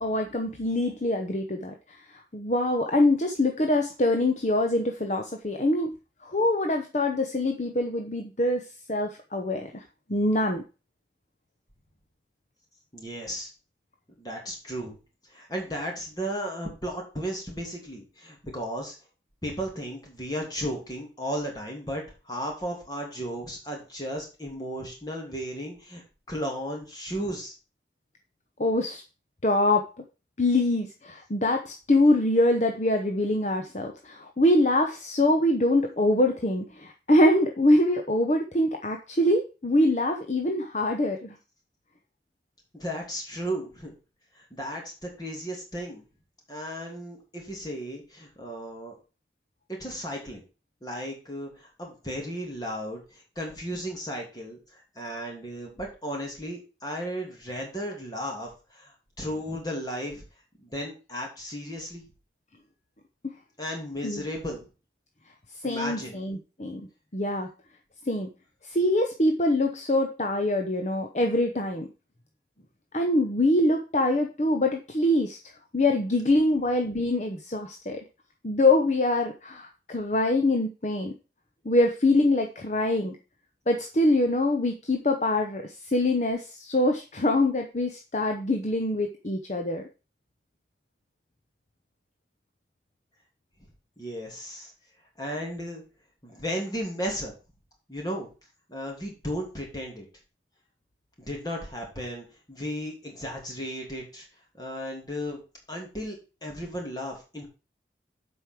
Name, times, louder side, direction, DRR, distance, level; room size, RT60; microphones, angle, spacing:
voice 1, 0.0-5.9 6.2-9.8 10.1-10.6 28.6-29.0 29.4-29.8 30.4-41.4 63.2-63.3 64.0-64.2 65.6-66.8 67.1-67.5 68.0-68.3 68.6-71.9 72.9-75.4 75.7-78.0 78.4-81.1 81.6-83.2 83.7-89.8, left 1 dB, 40° left, 4 dB, 0.9 m, -24 dB
voice 2, 12.9-13.5 14.2-14.9 15.3-18.9 19.4-27.5 42.7-43.9 44.4-46.0 46.5-48.9 49.8-50.4 50.8-60.2 60.6-62.0 63.6-64.7 65.6-66.2 94.0-94.7 95.2-95.8 96.2-97.3 97.9-98.3 98.7-100.0 101.2-104.3 104.6-105.4 105.7-107.5, equal, 20° left, 0 dB, 2.9 m, -35 dB
8.1 x 5.4 x 6.1 m, 0.32 s
head